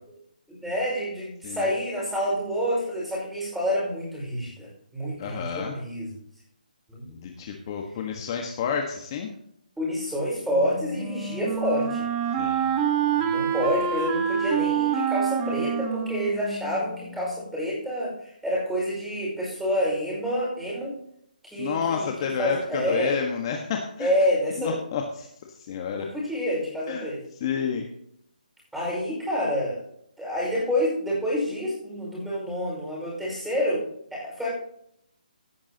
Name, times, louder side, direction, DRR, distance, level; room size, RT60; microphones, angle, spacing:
voice 1, 0.5-6.1 6.9-7.0 9.8-12.1 13.2-21.0 21.4-23.2 24.0-24.9 26.0-27.2 28.7-29.8 30.2-33.9 34.1-34.5, equal, 5° right, -5 dB, 5.3 m, -28 dB
voice 2, 5.2-5.7 7.0-9.3 12.4-12.6 21.6-24.1 24.6-25.3 25.7-26.1 26.9-27.1 27.4-27.9, left 6 dB, 30° left, 2 dB, 1.4 m, -29 dB
Wind instrument woodwind instrument, 10.5-17.4, right 7 dB, 20° right, 1.5 m, -27 dB
16.5 x 8.7 x 2.9 m, 0.73 s
hypercardioid pair, 160°, 5 cm